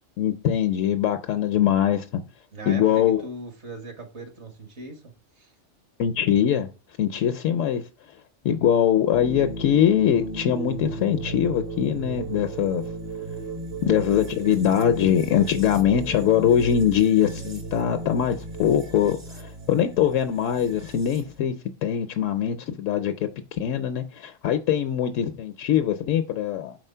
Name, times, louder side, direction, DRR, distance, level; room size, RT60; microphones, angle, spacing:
voice 1, 0.2-2.2 2.7-3.2 6.0-6.7 7.0-7.8 8.4-12.8 13.8-21.5 21.8-23.3 23.6-26.8, left 9 dB, 80° left, 0.9 m, -22 dB
voice 2, 2.5-5.0 5.4-5.5, right 2 dB, 65° right, 1.6 m, -39 dB
sound 1, 9.1-21.4, right 2 dB, 40° right, 0.7 m, -35 dB
4.8 x 3.9 x 5.5 m
omnidirectional pair, 1.3 m